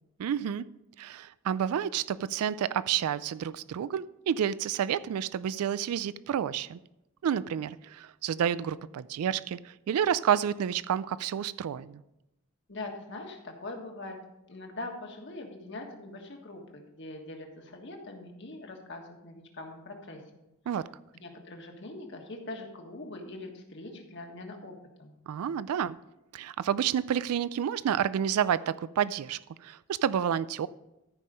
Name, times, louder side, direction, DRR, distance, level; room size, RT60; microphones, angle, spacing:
voice 1, 0.2-0.6 1.0-6.8 7.2-12.0 20.7-20.9 25.3-26.0 26.3-30.7, right 9 dB, 90° right, 17 dB, 0.3 m, -29 dB
voice 2, 12.7-14.2 14.5-20.2 21.2-25.1, left 2 dB, 55° left, 2 dB, 1.6 m, -42 dB
13.5 x 5.5 x 5.2 m, 0.93 s
head